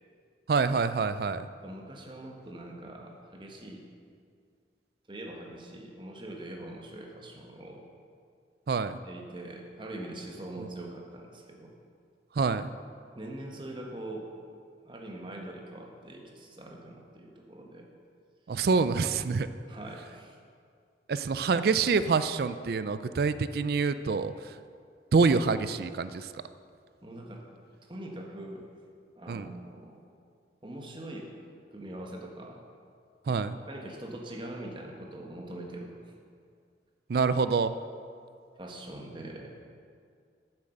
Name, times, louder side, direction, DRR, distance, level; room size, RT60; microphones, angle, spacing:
voice 1, 0.5-1.5 8.7-9.0 10.6-10.7 12.3-12.7 18.5-19.5 21.1-24.6 25.1-26.4 29.3-29.5 33.3-33.6 37.1-37.8, right 4 dB, 55° right, 13 dB, 0.4 m, -26 dB
voice 2, 1.6-3.8 5.1-7.8 9.0-11.7 13.1-14.3 14.8-17.9 19.7-20.4 27.0-27.5 27.8-28.7 29.2-30.1 30.6-31.3 31.7-32.7 33.7-35.9 38.6-39.6, right 1 dB, 25° right, 1 dB, 1.2 m, -43 dB
9.4 x 7.4 x 6.5 m, 2.2 s
head